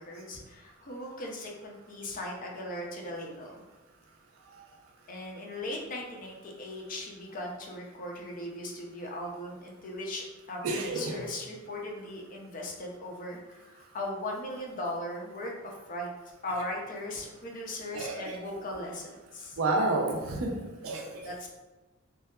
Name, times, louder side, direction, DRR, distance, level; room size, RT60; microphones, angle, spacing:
voice 1, 0.0-3.6 5.1-16.1 16.4-19.6 21.2-21.5, left 1 dB, 40° left, -1 dB, 0.4 m, -38 dB
voice 2, 10.6-11.2 17.9-18.4 19.6-20.5 20.8-21.3, right 2 dB, 70° right, 1 dB, 0.4 m, -30 dB
2.7 x 2.2 x 2.2 m, 1.1 s
head